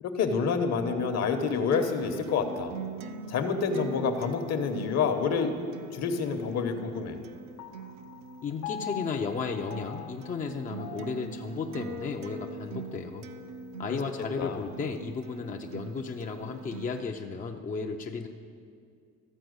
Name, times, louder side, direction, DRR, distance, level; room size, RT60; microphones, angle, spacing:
voice 1, 0.0-2.7 3.3-5.5 5.9-7.2 14.4-14.6, left 5 dB, 55° left, 7 dB, 1.1 m, -28 dB
Acoustic guitar, 1.0-17.0, right 5 dB, 60° right, 0.7 m, -43 dB
Piano, 7.6-14.3, left 11 dB, 70° left, 0.8 m, -44 dB
voice 2, 8.4-13.2 13.8-18.3, left 5 dB, 25° left, 3 dB, 0.6 m, -34 dB
13.5 x 4.5 x 7.9 m, 2.2 s
cardioid pair, 115°, 32 cm